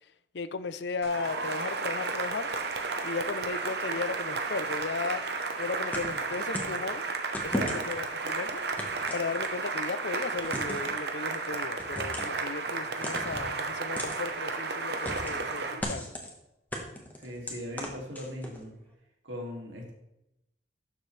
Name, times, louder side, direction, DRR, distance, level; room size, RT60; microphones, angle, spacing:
voice 1, 0.0-5.2 5.6-7.0 7.4-8.6 9.1-16.1, left 4 dB, 70° left, 14 dB, 0.6 m, -36 dB
Cheering / Applause, 1.0-15.8, right 4 dB, 60° right, 1.0 m, -33 dB
sound 1, 5.9-6.8 7.3-8.0 8.8-9.7 10.4-10.9 11.8-12.4 13.0-13.5 14.0-14.2 15.0-15.4 15.8-16.3 16.7-18.6, left 1 dB, 10° left, 1.3 m, -36 dB
voice 2, 7.6-7.9 17.2-18.7 19.2-19.9, equal, 85° right, 0 dB, 2.6 m, -39 dB
12.0 x 7.1 x 3.3 m, 0.87 s
head